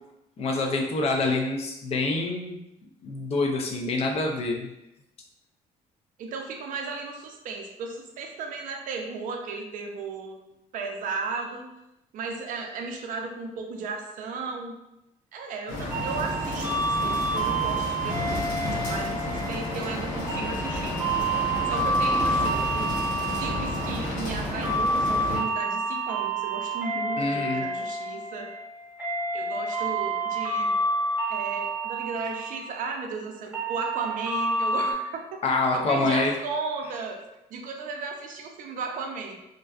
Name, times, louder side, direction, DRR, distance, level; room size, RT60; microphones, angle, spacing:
voice 1, 0.4-2.6 3.0-4.7 27.2-27.7 35.4-36.3, left 3 dB, 45° left, 1 dB, 0.4 m, -26 dB
voice 2, 6.2-10.4 10.7-11.7 12.1-14.8 15.3-18.4 18.9-21.0 21.7-22.9 23.4-28.5 29.3-30.8 31.3-35.4 35.7-37.2 37.5-39.4, right 4 dB, 65° right, 2 dB, 0.5 m, -35 dB
sound 1, 15.7-25.4, left 1 dB, 70° left, 0.8 m, -31 dB
sound 2, 15.9-34.9, right 2 dB, 10° right, 0.8 m, -29 dB
2.5 x 2.2 x 2.3 m, 0.89 s
cardioid pair, 130°, 15 cm